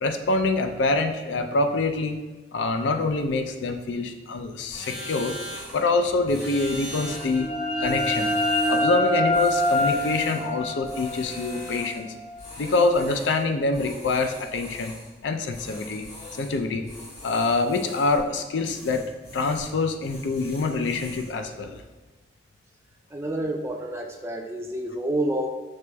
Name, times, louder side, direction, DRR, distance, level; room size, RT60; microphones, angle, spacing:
voice 1, 0.0-2.2 2.5-5.4 5.7-8.3 8.7-12.1 12.6-14.9 15.2-16.0 16.3-16.9 17.2-19.0 19.3-21.8, left 3 dB, 90° left, 6 dB, 0.4 m, -25 dB
sound 1, 4.7-5.9 6.3-7.4 7.8-8.9 9.3-10.5 10.8-12.0 12.4-13.4 13.7-15.1 15.5-16.6 16.8-18.3 18.6-19.8 20.0-21.4, left 1 dB, 60° left, 0.9 m, -41 dB
sound 2, 6.9-12.4, left 1 dB, 35° left, 0.6 m, -26 dB
voice 2, 23.1-25.5, right 1 dB, 15° right, 1 dB, 0.3 m, -28 dB
6.0 x 3.0 x 2.2 m, 1.2 s
head